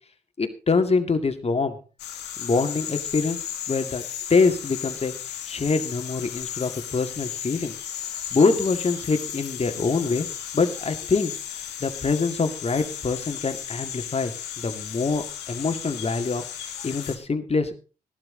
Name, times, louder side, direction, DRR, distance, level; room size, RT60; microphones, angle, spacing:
voice 1, 0.4-1.8 2.4-3.4 3.7-4.0 4.3-5.1 5.5-7.7 8.0-10.3 10.5-11.4 11.8-17.8, left 4 dB, 35° left, 7 dB, 2.1 m, -25 dB
sound 1, 2.0-17.2, left 10 dB, 75° left, 1.4 m, -35 dB
14.5 x 12.0 x 3.9 m, 0.35 s
hypercardioid pair, 40°, 18 cm